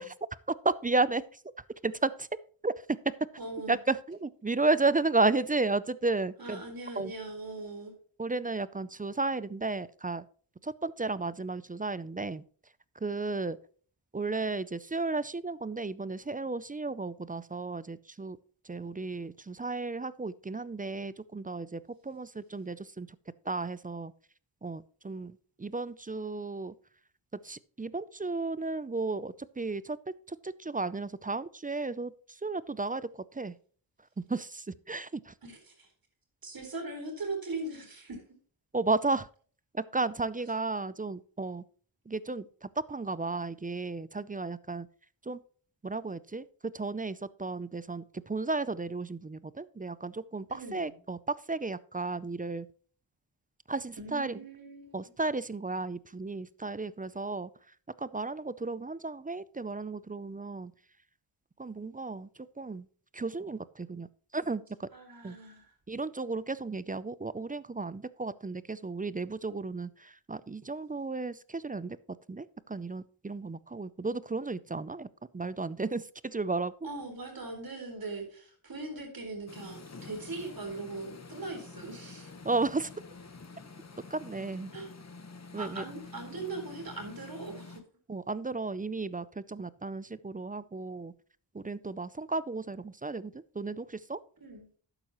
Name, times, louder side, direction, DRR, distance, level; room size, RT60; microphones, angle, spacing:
voice 1, 0.6-1.2 1.8-2.3 2.6-2.7 3.0-3.1 3.7-6.6 7.0-7.1 8.2-10.2 10.6-12.4 13.0-13.6 14.1-18.4 18.6-23.1 23.5-24.1 24.6-26.7 27.4-33.5 34.2-35.3 38.7-39.3 39.7-41.6 42.1-44.9 45.2-45.4 45.8-52.7 53.7-54.4 54.9-57.5 58.0-60.7 61.6-62.3 62.6-62.9 63.1-64.1 64.3-64.9 65.2-65.4 65.9-72.0 72.3-75.1 75.3-76.7 82.4-82.9 84.1-84.7 85.5-85.8 88.1-91.1 91.5-94.2, right 3 dB, 20° right, 17 dB, 0.4 m, -33 dB
voice 2, 3.4-3.8 6.4-7.9 35.4-35.9 36.4-38.2 50.5-51.0 54.0-55.1 64.9-65.7 76.8-82.3 84.7-84.9 85.6-87.8 94.4-94.7, right 3 dB, 45° right, 3 dB, 4.3 m, -40 dB
sound 1, 79.5-87.8, left 3 dB, 35° left, 1.2 m, -48 dB
12.0 x 9.0 x 3.0 m, 0.44 s
wide cardioid pair, 90°, 48 cm